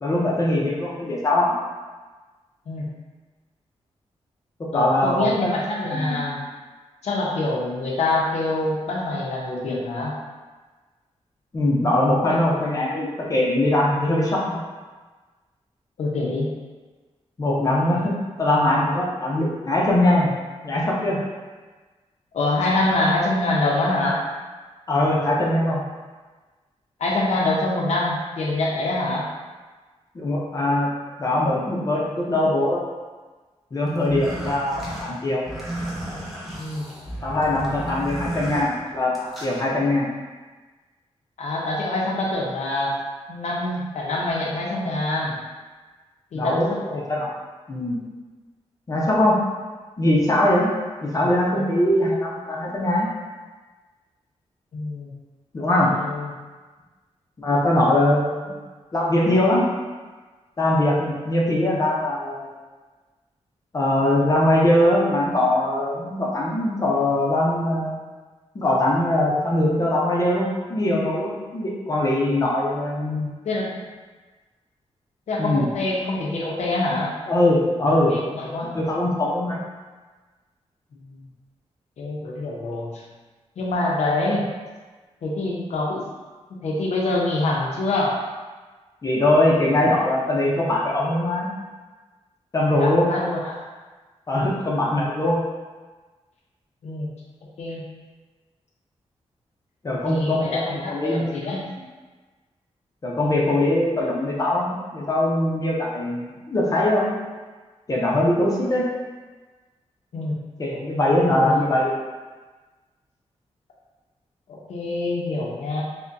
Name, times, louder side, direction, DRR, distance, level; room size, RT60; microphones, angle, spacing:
voice 1, 0.0-1.5 4.6-5.5 5.9-6.2 11.5-14.6 17.4-18.1 18.4-20.3 20.6-21.2 24.9-25.8 30.1-30.9 31.2-32.8 33.7-35.4 37.2-40.1 46.3-47.3 47.7-48.0 48.9-49.4 50.0-50.7 51.0-53.1 55.5-55.9 57.4-58.6 58.9-59.7 60.6-62.5 63.7-67.9 68.5-73.3 75.4-75.7 77.3-78.2 78.7-79.6 89.0-91.5 92.5-93.1 94.3-95.4 99.8-101.2 103.0-107.1 107.9-108.9 110.6-111.9, left 1 dB, 30° left, -4 dB, 0.5 m, -21 dB
voice 2, 4.7-6.4 7.0-10.1 16.0-16.5 22.3-24.2 27.0-29.3 36.6-36.9 41.4-42.9 43.3-45.3 46.3-47.0 51.1-51.2 51.5-51.7 54.7-55.1 55.8-56.3 61.6-61.8 73.4-73.9 75.3-77.1 78.1-78.7 81.1-81.2 82.0-83.0 83.6-84.4 85.2-86.0 86.6-88.2 92.7-93.6 96.8-97.1 97.6-97.8 100.0-101.6 110.1-110.3 111.4-111.5 114.5-115.8, left 2 dB, 80° left, -3 dB, 0.6 m, -25 dB
sound 1, 34.0-39.6, right 1 dB, ahead, 0.8 m, -33 dB
5.1 x 2.1 x 2.6 m, 1.3 s
wide cardioid pair, 165°, 11 cm